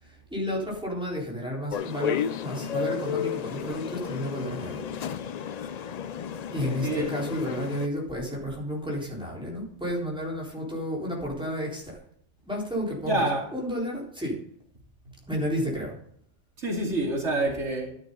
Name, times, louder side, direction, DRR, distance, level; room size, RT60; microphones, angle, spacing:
voice 1, 0.0-4.9 6.5-12.0 12.5-14.4 15.3-16.0, equal, 5° right, 3.9 m, -32 dB
sound 1, 1.7-7.9, left 8 dB, 60° left, 0.4 m, -33 dB
voice 2, 6.7-7.1 13.1-13.5 16.6-17.9, right 2 dB, 75° right, 2.9 m, -27 dB
11.5 x 11.0 x 3.8 m
omnidirectional pair, 1.2 m